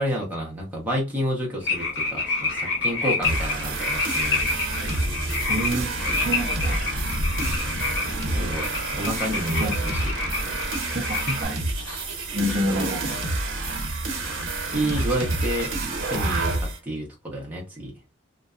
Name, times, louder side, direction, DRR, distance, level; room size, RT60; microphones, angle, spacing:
voice 1, 0.0-4.6 8.4-8.7 8.9-10.1 12.7-12.9 14.6-15.7 16.1-17.9, equal, 10° right, 0.8 m, -29 dB
sound 1, 1.6-11.4, left 3 dB, 55° left, 0.9 m, -28 dB
sound 2, 3.2-16.8, right 2 dB, 80° right, 0.9 m, -29 dB
sound 3, 4.0-16.2, left 1 dB, 85° left, 0.5 m, -35 dB
voice 2, 5.5-6.8 9.0-9.1 9.6-9.7 10.4-10.5 10.9-11.6 12.3-13.2, equal, 45° right, 0.5 m, -28 dB
2.6 x 2.2 x 2.3 m
head